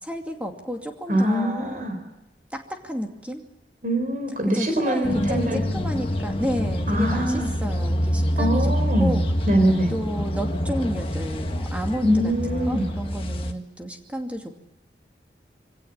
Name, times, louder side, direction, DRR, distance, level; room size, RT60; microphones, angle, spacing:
voice 1, 0.0-1.9 2.5-3.4 4.5-8.6 9.0-9.2 9.9-14.5, equal, 10° right, 3 dB, 2.5 m, -31 dB
voice 2, 1.1-2.0 3.8-5.6 6.9-7.5 8.4-9.9 12.0-12.9, equal, 45° right, 5 dB, 4.2 m, -23 dB
sound 1, 5.0-13.5, equal, 30° left, 1.6 m, -26 dB
24.5 x 17.5 x 8.9 m, 0.97 s
head